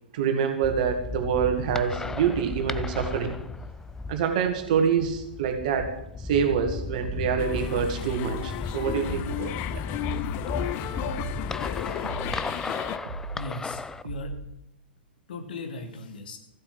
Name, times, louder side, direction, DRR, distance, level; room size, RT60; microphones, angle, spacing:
voice 1, 0.1-3.4 4.1-9.8, right 7 dB, 50° right, 6 dB, 2.2 m, -26 dB
sound 1, 0.6-14.0, left 3 dB, 10° left, 0.5 m, -35 dB
sound 2, 7.0-7.4 8.0-8.4 9.0-9.4 10.0-10.4 11.0-11.4 12.0-12.4 13.0-13.4 14.0-14.4, right 4 dB, 70° right, 2.0 m, -37 dB
sound 3, 7.4-13.0, left 12 dB, 35° left, 0.9 m, -34 dB
voice 2, 13.3-14.4 15.3-16.4, left 3 dB, 60° left, 5 dB, 2.5 m, -37 dB
15.0 x 8.1 x 7.5 m, 0.84 s
figure-of-eight pair, 105°, 5 cm